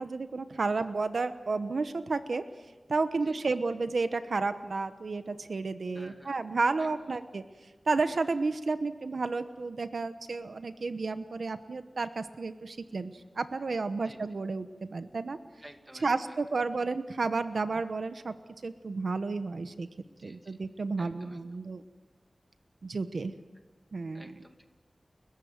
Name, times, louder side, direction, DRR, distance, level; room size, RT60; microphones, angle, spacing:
voice 1, 0.0-2.4 2.9-7.4 7.9-15.4 16.0-18.3 18.6-19.9 20.2-21.8 22.8-23.3 23.9-24.3, right 3 dB, 80° right, 11 dB, 1.0 m, -32 dB
voice 2, 5.9-6.4 6.8-7.4 14.0-14.2 15.6-16.4 20.1-20.6 21.0-21.4 24.1-24.6, equal, 10° right, 6 dB, 2.3 m, -53 dB
30.0 x 14.5 x 9.5 m, 1.3 s
wide cardioid pair, 85°, 0 cm